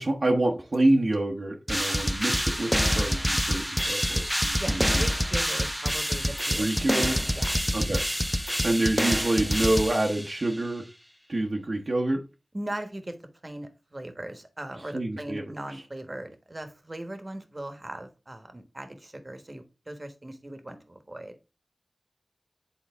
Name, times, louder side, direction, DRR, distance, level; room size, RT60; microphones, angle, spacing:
voice 1, 0.0-4.8 6.6-7.2 7.7-8.0 8.4-10.8 11.3-12.2 14.9-15.4 15.7-15.8, right 2 dB, 60° right, -1 dB, 0.9 m, -27 dB
sound 1, 1.7-10.5, equal, 5° right, 0.4 m, -27 dB
voice 2, 4.6-6.8 7.3-7.7 12.5-13.2 13.4-21.4, right 1 dB, 35° right, 8 dB, 1.1 m, -39 dB
8.2 x 3.9 x 3.5 m, 0.29 s
wide cardioid pair, 50°, 0 cm